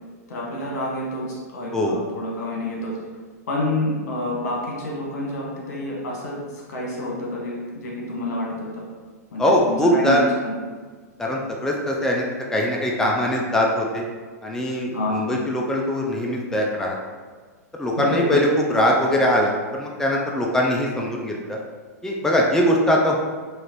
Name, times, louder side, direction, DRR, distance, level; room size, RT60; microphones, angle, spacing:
voice 1, 0.3-2.9 3.5-8.8 9.3-10.5 14.9-15.2 18.0-18.4, left 1 dB, 70° left, -4 dB, 1.4 m, -28 dB
voice 2, 1.7-2.0 9.4-10.2 11.2-12.3 12.5-14.0 14.4-17.0 17.7-21.6 22.0-23.3, left 1 dB, 5° left, -1 dB, 0.4 m, -21 dB
4.8 x 2.5 x 3.0 m, 1.5 s
hypercardioid pair, 115°, 9 cm